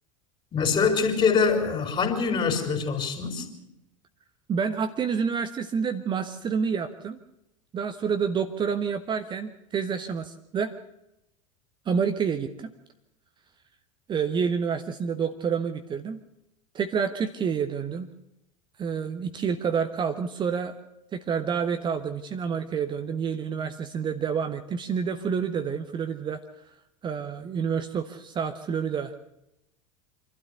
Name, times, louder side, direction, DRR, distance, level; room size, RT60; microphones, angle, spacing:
voice 1, 0.5-3.5, left 5 dB, 30° left, 5 dB, 4.2 m, -24 dB
voice 2, 4.5-7.2 7.7-10.7 11.9-12.7 14.1-16.2 16.7-18.1 18.8-20.7 21.1-26.4 27.0-29.1, right 6 dB, 25° right, 8 dB, 1.2 m, -28 dB
26.0 x 12.5 x 8.1 m, 0.86 s
figure-of-eight pair, 80°, 17 cm